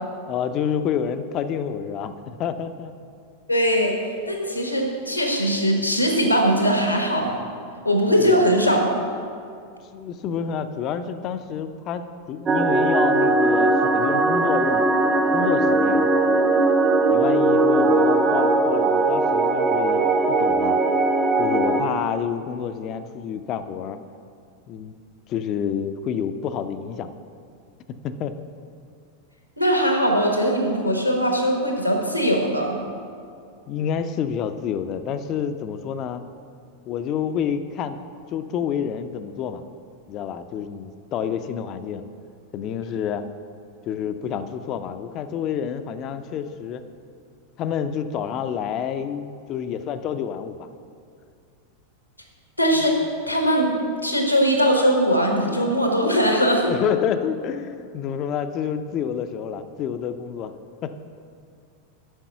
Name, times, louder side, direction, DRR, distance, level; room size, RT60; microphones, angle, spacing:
voice 1, 0.3-2.9 8.2-8.5 9.9-12.0 12.3-14.9 15.3-16.1 17.1-20.8 21.4-24.0 24.7-24.9 25.3-27.1 28.0-28.5 33.7-36.2 36.9-38.0 38.3-39.7 40.1-42.0 42.5-43.2 43.9-46.8 47.6-50.7 56.6-60.5 60.8-61.0, left 8 dB, 35° left, 10 dB, 0.5 m, -28 dB
voice 2, 3.5-4.0 4.3-7.4 7.8-8.9 29.6-32.8 52.6-53.7 54.0-56.7, equal, 90° left, 2 dB, 1.2 m, -20 dB
sound 1, 12.5-21.8, right 2 dB, 25° right, 0.6 m, -19 dB
7.9 x 6.0 x 5.7 m, 2.3 s
figure-of-eight pair, 90°, 0 cm